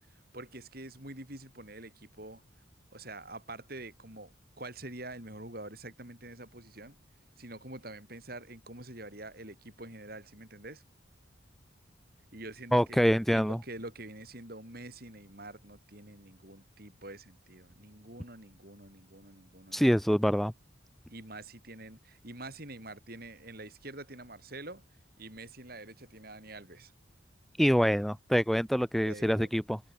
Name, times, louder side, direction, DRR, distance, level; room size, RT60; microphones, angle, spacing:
voice 1, 0.3-2.4 2.9-7.0 7.4-10.8 12.3-13.1 13.3-19.9 21.1-24.8 25.2-26.9 29.1-29.5, right 2 dB, 50° right, 7.5 m, -46 dB
voice 2, 12.7-13.6 19.7-20.5 27.6-29.8, equal, ahead, 0.9 m, -25 dB
head